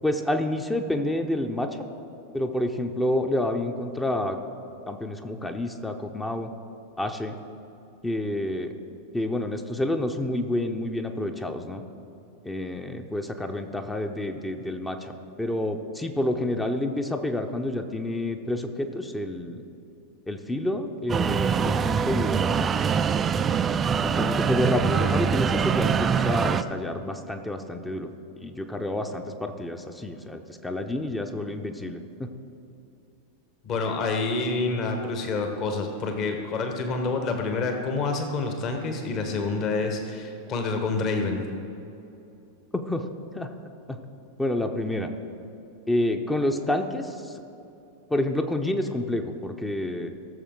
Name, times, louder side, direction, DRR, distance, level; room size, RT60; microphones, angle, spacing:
voice 1, 0.0-1.8 2.3-4.4 4.9-6.5 7.0-7.4 8.0-8.7 9.1-11.8 12.4-19.6 20.3-22.7 24.0-28.1 28.4-32.3 42.7-43.0 43.3-43.5 43.9-44.0 44.4-45.1 45.9-47.4 48.1-50.1, left 1 dB, 10° left, 5 dB, 0.7 m, -29 dB
sound 1, 21.1-26.6, right 7 dB, 20° right, 0.3 m, -24 dB
voice 2, 33.6-41.4, left 3 dB, 35° left, 4 dB, 1.2 m, -28 dB
17.0 x 7.0 x 3.7 m, 2.7 s
figure-of-eight pair, 90°, 0 cm